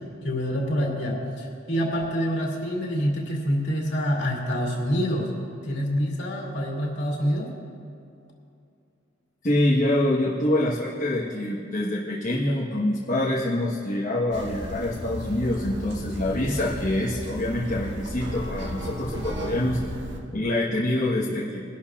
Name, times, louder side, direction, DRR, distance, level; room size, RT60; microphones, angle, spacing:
voice 1, 0.2-5.3 5.6-7.5, equal, 60° left, -2 dB, 2.4 m, -26 dB
voice 2, 9.4-19.8 20.3-21.6, left 1 dB, 45° left, -6 dB, 1.2 m, -25 dB
sound 1, 14.3-20.2, equal, 65° right, 1.5 m, -34 dB
22.5 x 12.0 x 2.4 m, 2.6 s
head